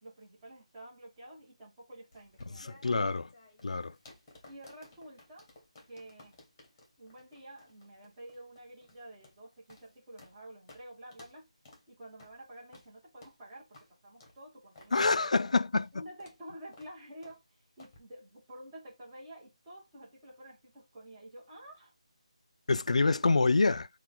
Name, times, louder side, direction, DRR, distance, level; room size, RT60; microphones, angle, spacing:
voice 1, 0.0-3.0 4.5-5.5 5.9-6.4 7.0-11.5 11.9-13.8 14.0-15.3 15.9-21.9 22.9-23.2, right 1 dB, 15° right, 1.3 m, -50 dB
sound 1, 2.1-10.4 10.7-10.8 11.1-11.4 11.6-11.8 12.2-12.4 12.7-12.9 13.2-13.4 13.7-13.9 14.2-14.4 14.7-14.9 15.2-15.4 15.8-15.9 16.2-16.4 16.7-16.9 17.2-17.4 17.8-18.0, left 2 dB, 15° left, 1.2 m, -57 dB
voice 2, 2.8-3.2 3.6-3.9 14.9-15.9 22.7-23.9, left 3 dB, 75° left, 0.4 m, -26 dB
5.8 x 2.4 x 3.7 m
figure-of-eight pair, 175°, 4 cm